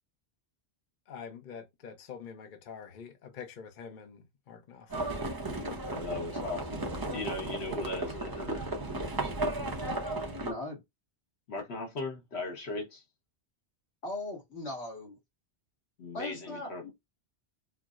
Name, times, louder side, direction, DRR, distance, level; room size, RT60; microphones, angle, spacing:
voice 1, 1.1-5.1, left 6 dB, 55° left, 0.8 m, -46 dB
Livestock farm animals working animals, 4.9-10.5, right 2 dB, 25° right, 0.5 m, -35 dB
voice 2, 5.8-8.6 11.5-13.0 16.0-16.9, left 2 dB, 70° left, 1.3 m, -38 dB
voice 3, 10.4-10.8 14.0-15.2 16.1-16.9, left 2 dB, 85° left, 1.7 m, -38 dB
4.4 x 2.0 x 2.3 m
omnidirectional pair, 1.1 m